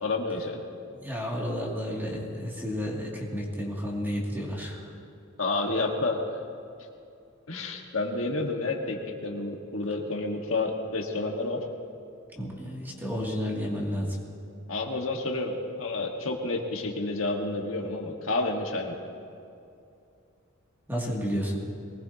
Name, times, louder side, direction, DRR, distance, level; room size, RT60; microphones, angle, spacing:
voice 1, 0.0-0.6 5.4-6.2 7.5-11.6 14.7-19.0, left 2 dB, 70° left, 1 dB, 1.6 m, -30 dB
voice 2, 1.0-4.9 12.4-14.1 20.9-21.6, equal, 10° right, -3 dB, 2.6 m, -31 dB
23.0 x 19.5 x 2.9 m, 2.6 s
head